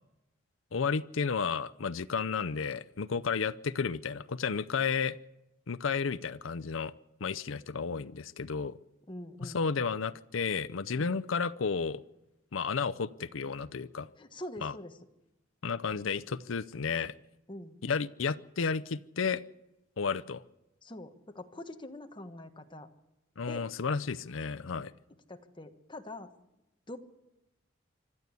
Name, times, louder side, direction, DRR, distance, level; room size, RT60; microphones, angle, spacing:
voice 1, 0.7-5.2 5.7-6.9 7.2-8.8 9.4-12.0 12.5-14.1 14.6-14.7 15.6-17.1 17.8-19.4 20.0-20.4 23.4-24.9, left 5 dB, 80° left, 13 dB, 0.6 m, -32 dB
voice 2, 9.1-9.9 10.9-11.2 14.2-15.0 17.5-17.8 20.8-22.9 23.5-23.7 25.3-26.3 26.9-27.0, left 1 dB, 25° left, 6 dB, 1.4 m, -44 dB
25.5 x 12.0 x 8.3 m, 0.94 s
head